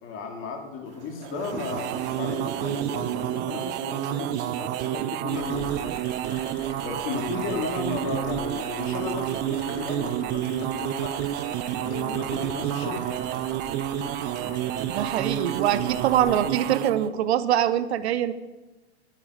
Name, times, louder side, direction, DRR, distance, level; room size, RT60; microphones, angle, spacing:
voice 1, 0.0-5.9 6.8-11.1 11.8-13.2, left 4 dB, 40° left, 2 dB, 2.6 m, -35 dB
sound 1, 0.9-6.1, right 4 dB, 85° right, 2.0 m, -43 dB
sound 2, 1.3-17.1, right 12 dB, 30° right, 0.5 m, -29 dB
sound 3, 5.3-16.4, left 3 dB, 70° left, 2.8 m, -44 dB
voice 2, 14.9-18.3, right 11 dB, 70° right, 13 dB, 0.8 m, -24 dB
10.5 x 9.8 x 5.0 m, 1.1 s
hypercardioid pair, 110°, 34 cm